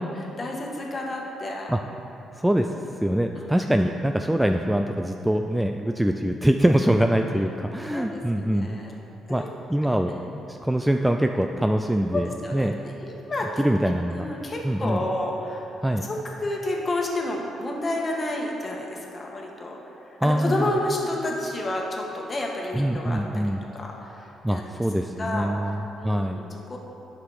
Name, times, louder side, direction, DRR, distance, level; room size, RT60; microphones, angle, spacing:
voice 1, 0.0-1.7 3.3-3.7 7.9-8.9 9.3-9.5 10.1-10.3 12.1-13.6 14.1-24.7 25.2-26.8, left 1 dB, 30° left, -1 dB, 1.5 m, -31 dB
voice 2, 2.4-2.7 3.0-8.8 9.3-9.4 9.7-10.1 10.5-12.8 13.6-14.3 14.6-15.0 15.8-16.0 20.2-20.7 22.7-23.6 24.4-26.4, right 1 dB, 5° right, 5 dB, 0.3 m, -23 dB
9.4 x 6.1 x 4.9 m, 2.9 s
cardioid pair, 90°, 0 cm